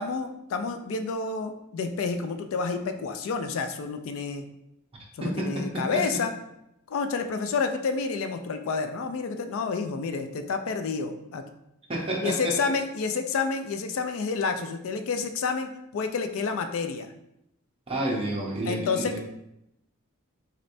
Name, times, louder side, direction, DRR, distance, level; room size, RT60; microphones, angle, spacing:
voice 1, 0.0-4.4 5.2-6.3 6.9-11.4 12.2-17.1 18.7-19.2, left 4 dB, 65° left, 7 dB, 0.3 m, -29 dB
voice 2, 5.2-6.0 11.9-12.7 17.9-19.2, right 1 dB, 25° right, -2 dB, 0.7 m, -30 dB
4.0 x 3.2 x 2.6 m, 0.83 s
head